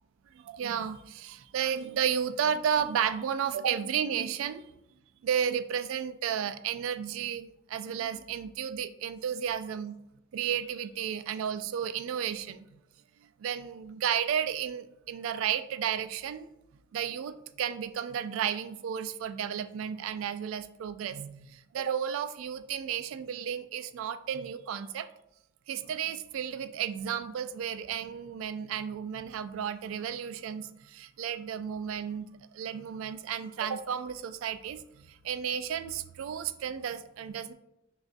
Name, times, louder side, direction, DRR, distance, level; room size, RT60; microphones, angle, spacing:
voice 1, 0.3-4.6 5.2-9.9 10.3-12.6 13.4-16.5 16.9-25.1 25.7-37.5, right 8 dB, 70° right, 11 dB, 0.3 m, -33 dB
6.3 x 2.4 x 2.5 m, 0.83 s
head